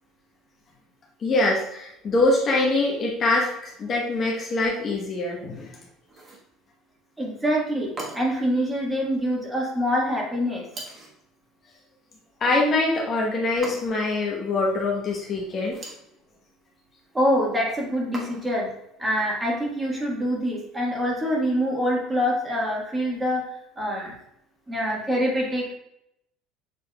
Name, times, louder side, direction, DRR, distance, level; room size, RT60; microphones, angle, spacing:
voice 1, 1.2-5.8 12.4-15.8, left 2 dB, 35° left, -2 dB, 1.0 m, -24 dB
sound 1, 6.1-6.5 8.0-8.5 10.7-11.2 13.6-14.2 15.6-16.1 18.1-18.7, right 2 dB, 30° right, 1.3 m, -39 dB
voice 2, 7.2-10.7 17.1-18.7 19.0-23.4 23.8-24.1 24.7-25.7, equal, 10° right, -3 dB, 1.5 m, -25 dB
6.8 x 3.3 x 2.3 m, 0.79 s
supercardioid pair, 125°, 0 cm